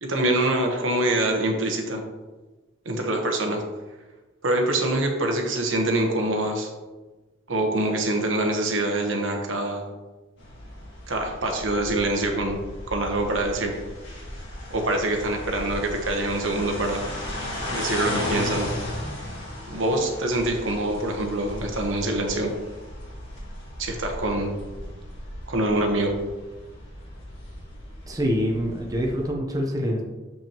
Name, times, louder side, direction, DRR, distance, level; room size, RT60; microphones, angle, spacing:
voice 1, 0.0-2.0 2.8-3.6 4.4-6.7 7.5-9.9 11.1-12.6 12.9-13.7 14.7-17.1 17.7-18.7 19.7-22.5 23.8-24.5 25.5-26.1, right 1 dB, 75° right, 2 dB, 1.1 m, -25 dB
sound 1, 10.4-29.3, left 1 dB, 65° left, 1.9 m, -36 dB
voice 2, 28.1-30.0, equal, 20° right, 0 dB, 0.7 m, -25 dB
7.2 x 5.7 x 2.9 m, 1.2 s
head